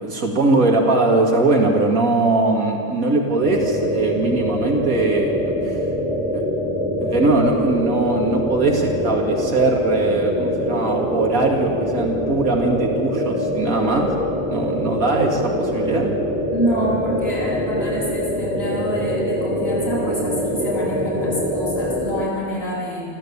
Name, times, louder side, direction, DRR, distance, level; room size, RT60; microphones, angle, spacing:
voice 1, 0.0-5.8 6.3-6.5 7.0-14.1 14.5-16.1, right 2 dB, 85° right, 1 dB, 2.6 m, -20 dB
sound 1, 3.4-22.3, equal, 5° right, 2.3 m, -24 dB
voice 2, 16.5-23.0, equal, 45° left, -7 dB, 7.8 m, -26 dB
28.0 x 13.0 x 8.6 m, 2.4 s
omnidirectional pair, 1.5 m